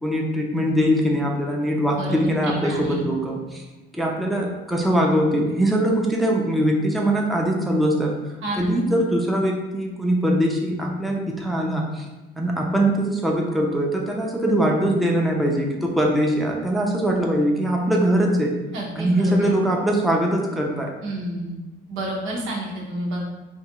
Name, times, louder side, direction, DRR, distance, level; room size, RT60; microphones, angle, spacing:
voice 1, 0.0-3.6 3.9-8.1 8.5-12.1 12.4-18.5 19.0-20.9, right 1 dB, ahead, -1 dB, 0.5 m, -22 dB
voice 2, 1.9-3.1 8.4-8.7 18.7-19.5 21.0-21.5 21.9-23.2, right 1 dB, 85° right, -3 dB, 0.9 m, -30 dB
3.4 x 2.4 x 2.9 m, 1.1 s
cardioid pair, 90°, 20 cm